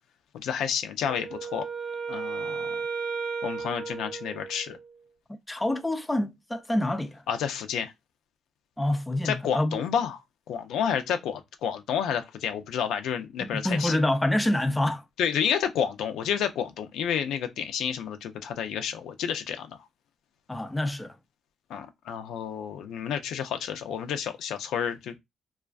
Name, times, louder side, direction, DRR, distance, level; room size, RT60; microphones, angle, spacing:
voice 1, 0.3-1.6 2.1-2.7 3.4-4.8 7.3-7.9 9.2-10.2 10.5-14.0 15.2-19.8 21.7-25.1, left 8 dB, 85° left, 0.4 m, -30 dB
Wind instrument woodwind instrument, 1.1-5.0, right 5 dB, 75° right, 0.8 m, -34 dB
voice 2, 5.5-7.2 8.8-9.8 13.4-15.0 20.5-21.2, left 1 dB, 10° left, 0.3 m, -27 dB
2.4 x 2.2 x 2.3 m
cardioid pair, 90°, 0 cm